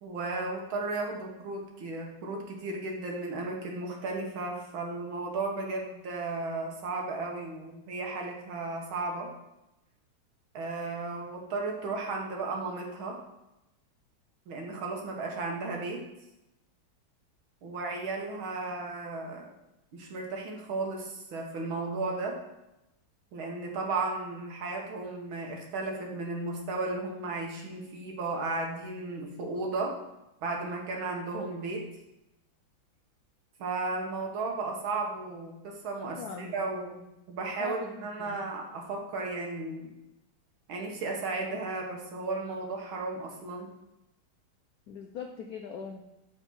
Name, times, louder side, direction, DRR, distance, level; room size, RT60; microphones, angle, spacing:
voice 1, 0.0-9.3 10.5-13.2 14.5-16.0 17.6-19.5 19.9-22.4 23.3-30.0 30.4-31.8 33.6-37.0 37.3-39.9 40.7-43.7, right 3 dB, 75° right, 1 dB, 2.0 m, -34 dB
voice 2, 36.1-36.6 37.6-38.4 44.9-46.1, left 6 dB, 80° left, 3 dB, 0.8 m, -41 dB
5.9 x 4.4 x 6.0 m, 0.92 s
omnidirectional pair, 2.3 m